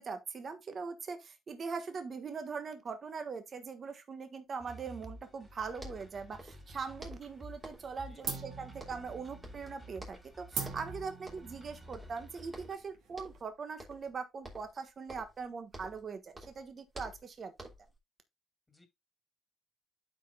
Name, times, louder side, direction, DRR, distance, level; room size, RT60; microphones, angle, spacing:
voice 1, 0.0-17.5, right 5 dB, 45° right, 1.3 m, -41 dB
sound 1, 4.6-12.7, right 1 dB, 5° right, 4.3 m, -52 dB
sound 2, 5.5-5.6 5.8-6.7 7.0-8.0 8.2-9.2 9.4-10.3 10.6-10.9 11.3-11.6 11.9-12.8 13.2-13.5 13.8-14.1 14.4-16.1 16.3-18.0, equal, 25° right, 3.2 m, -50 dB
sound 3, 6.3-7.2 7.5-7.9 8.2-13.4, right 6 dB, 80° right, 1.8 m, -43 dB
voice 2, 8.1-8.7 18.7-18.9, left 2 dB, 20° left, 2.2 m, -62 dB
12.0 x 5.0 x 2.3 m
cardioid pair, 90°, 0 cm